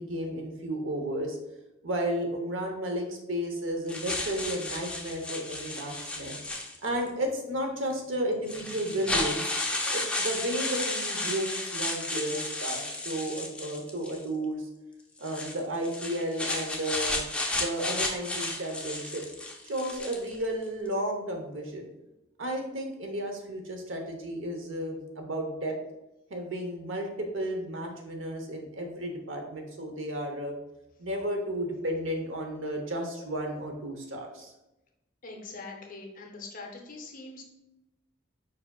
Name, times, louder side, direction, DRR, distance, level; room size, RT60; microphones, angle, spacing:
voice 1, 0.0-1.4 1.8-6.4 6.8-9.5 9.9-14.7 15.2-17.2 17.5-19.2 19.6-21.9 22.4-25.7 26.3-30.6 31.0-34.5, right 1 dB, 80° right, 3 dB, 0.9 m, -33 dB
sound 1, 3.9-7.1 7.9-8.0 8.5-14.2 15.2-20.4, left 2 dB, 5° left, 0.5 m, -33 dB
voice 2, 35.2-37.4, left 3 dB, 45° left, 1 dB, 0.7 m, -43 dB
4.9 x 4.7 x 2.3 m, 0.93 s
head